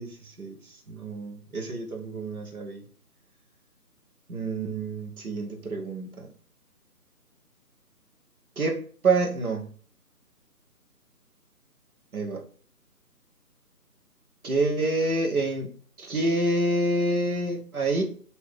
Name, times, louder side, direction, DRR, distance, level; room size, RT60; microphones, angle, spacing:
voice 1, 0.0-2.8 4.3-6.1 8.6-9.7 12.1-12.4 14.4-15.7 16.0-18.0, right 2 dB, 65° right, 3 dB, 1.0 m, -27 dB
2.9 x 2.7 x 3.5 m, 0.43 s
figure-of-eight pair, 150°, 47 cm